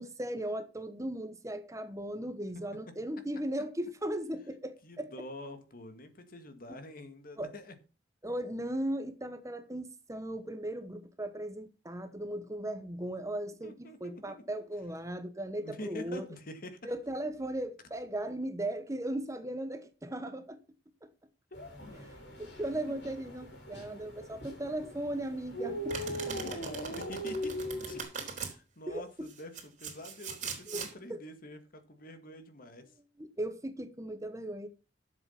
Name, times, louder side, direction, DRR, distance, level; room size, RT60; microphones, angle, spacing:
voice 1, 0.0-5.1 6.7-6.8 7.4-7.5 8.2-16.2 16.8-20.6 21.0-21.1 22.4-26.6 28.9-29.3 30.7-31.2 33.2-34.7, right 1 dB, 20° right, 1.1 m, -37 dB
voice 2, 4.8-7.8 13.6-14.4 15.6-16.9 21.5-21.7 26.4-28.0 28.4-32.9, left 1 dB, 55° left, 1.9 m, -46 dB
sound 1, 21.5-28.0, equal, 70° left, 4.9 m, -40 dB
Domestic sounds home sounds, 25.9-28.5 29.3-30.9, right 5 dB, 45° right, 3.8 m, -40 dB
11.5 x 7.5 x 5.8 m
head